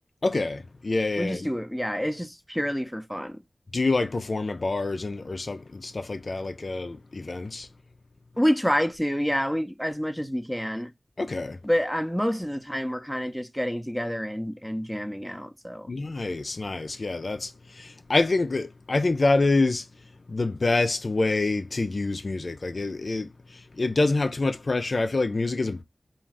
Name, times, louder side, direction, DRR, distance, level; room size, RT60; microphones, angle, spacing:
voice 1, 0.2-1.5 3.7-7.7 11.2-11.6 15.9-19.8 20.3-25.8, left 3 dB, 60° left, 0.3 m, -26 dB
voice 2, 1.2-3.4 8.4-10.9 11.6-15.9, equal, ahead, 0.5 m, -28 dB
2.4 x 2.4 x 3.1 m
cardioid pair, 45°, 0 cm